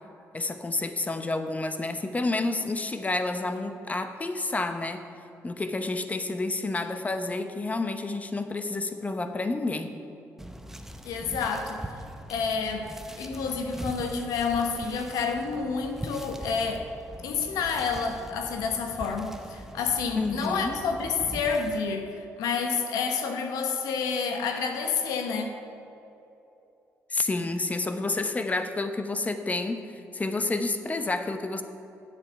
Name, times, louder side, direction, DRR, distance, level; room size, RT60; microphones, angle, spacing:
voice 1, 0.3-5.0 5.4-9.9 20.1-20.8 27.1-29.8 30.1-31.6, left 2 dB, 25° left, 8 dB, 0.9 m, -29 dB
sound 1, 10.4-21.8, right 1 dB, 5° right, 0.7 m, -42 dB
voice 2, 11.0-11.9 12.3-12.9 13.2-16.8 17.2-25.5, left 5 dB, 85° left, 4 dB, 1.0 m, -29 dB
8.8 x 7.7 x 5.8 m, 2.8 s
cardioid pair, 75°, 6 cm